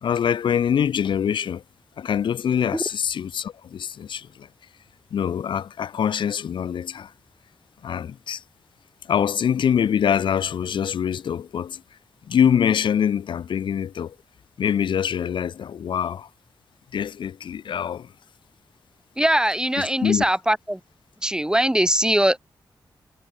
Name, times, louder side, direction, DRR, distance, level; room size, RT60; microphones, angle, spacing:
voice 1, 0.0-1.6 2.0-4.5 5.1-7.1 7.8-8.4 9.1-11.8 12.3-14.1 14.6-16.3 16.9-18.1 19.8-20.2, left 8 dB, 80° left, 0.8 m, -24 dB
voice 2, 19.2-20.8 21.2-22.4, right 1 dB, 10° right, 1.7 m, -21 dB
cardioid pair, 50°, 8 cm